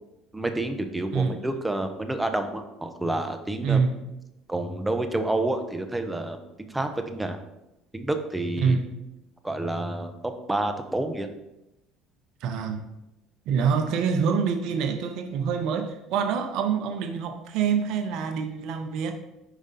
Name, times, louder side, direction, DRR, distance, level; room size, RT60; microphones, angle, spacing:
voice 1, 0.3-3.8 4.5-7.4 7.9-8.8 9.4-11.3, right 2 dB, 10° right, 7 dB, 0.8 m, -29 dB
voice 2, 3.6-4.1 8.6-8.9 12.4-12.8 13.5-19.1, right 6 dB, 65° right, 7 dB, 0.7 m, -26 dB
5.0 x 5.0 x 4.1 m, 0.92 s
hypercardioid pair, 70°, 0 cm